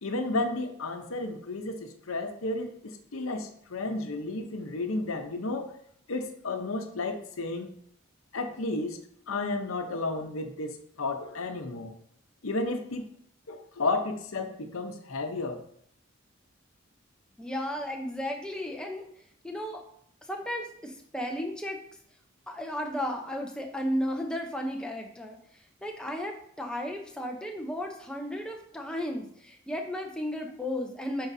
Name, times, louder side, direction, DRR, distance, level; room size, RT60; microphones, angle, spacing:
voice 1, 0.0-5.8 6.1-7.7 8.3-9.0 9.3-11.9 12.4-13.1 13.5-15.6, left 2 dB, 85° left, 6 dB, 0.8 m, -32 dB
voice 2, 17.4-19.1 19.4-19.8 20.3-21.8 22.5-25.4 25.8-31.3, equal, 5° left, 1 dB, 0.7 m, -34 dB
9.0 x 4.7 x 2.7 m, 0.66 s
head